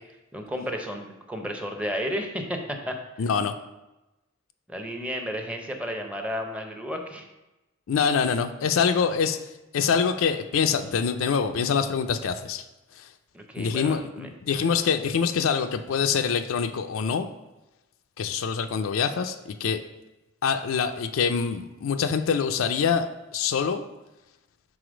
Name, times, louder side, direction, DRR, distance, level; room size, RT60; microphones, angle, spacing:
voice 1, 0.3-3.0 4.7-7.3 13.3-14.3, equal, 5° right, 3 dB, 0.6 m, -32 dB
voice 2, 3.2-3.5 7.9-9.4 9.7-12.6 13.0-13.1 13.6-17.3 18.2-19.8 20.4-23.1 23.3-23.8, left 6 dB, 85° left, 8 dB, 0.4 m, -25 dB
4.9 x 3.9 x 5.0 m, 1.0 s
head